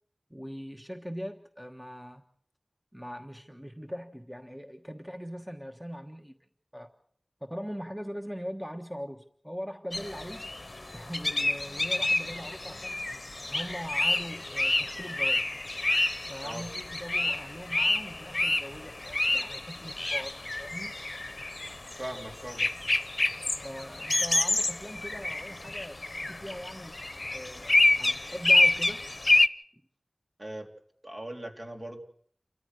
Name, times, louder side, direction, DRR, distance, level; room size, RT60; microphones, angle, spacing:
voice 1, 0.3-2.2 2.9-6.3 6.7-6.9 7.4-10.5 10.9-13.1 13.4-15.4 16.3-20.9 23.6-26.0 26.3-26.9 27.3-29.1, equal, 5° right, 1.4 m, -41 dB
sound 1, 9.9-29.5, left 2 dB, 55° left, 0.8 m, -28 dB
voice 2, 22.0-22.7 30.4-30.7 31.0-32.0, right 1 dB, 45° right, 3.4 m, -39 dB
29.0 x 14.0 x 6.5 m
wide cardioid pair, 45°, 0 cm